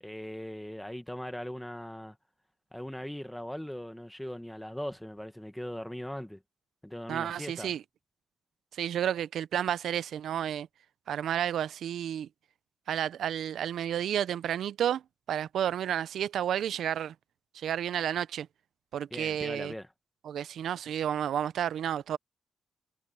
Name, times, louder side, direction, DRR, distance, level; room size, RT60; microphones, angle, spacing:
voice 1, 0.0-2.2 2.7-6.4 6.8-7.7 19.1-19.9, equal, 5° left, 1.5 m, -39 dB
voice 2, 7.1-7.8 8.7-10.7 11.1-12.3 12.9-15.0 15.3-17.1 17.5-18.5 18.9-19.7 20.2-22.2, right 10 dB, 75° right, 0.5 m, -31 dB
wide cardioid pair, 165°, 0 cm